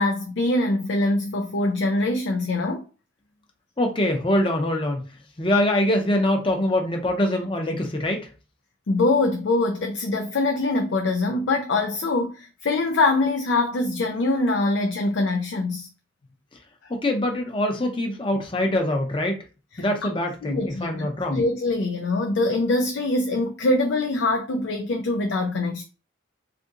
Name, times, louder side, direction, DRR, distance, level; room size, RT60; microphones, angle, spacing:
voice 1, 0.0-2.9 8.9-15.9 19.8-20.1 20.4-25.8, left 2 dB, 65° left, 0.4 m, -23 dB
voice 2, 3.8-5.0 5.4-8.3 16.9-19.4 19.8-21.4, left 1 dB, 25° left, 0.6 m, -24 dB
2.6 x 2.5 x 3.7 m
head